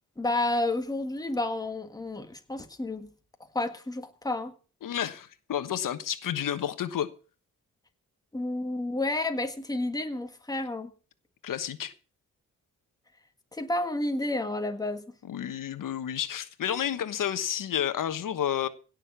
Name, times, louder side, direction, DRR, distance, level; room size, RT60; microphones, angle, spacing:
voice 1, 0.2-3.1 3.5-4.5 8.3-10.9 13.5-15.0, left 2 dB, 10° left, 1.7 m, -30 dB
voice 2, 4.8-7.1 11.4-11.9 15.2-18.7, left 10 dB, 80° left, 1.2 m, -30 dB
17.0 x 6.6 x 7.4 m
wide cardioid pair, 120°, 32 cm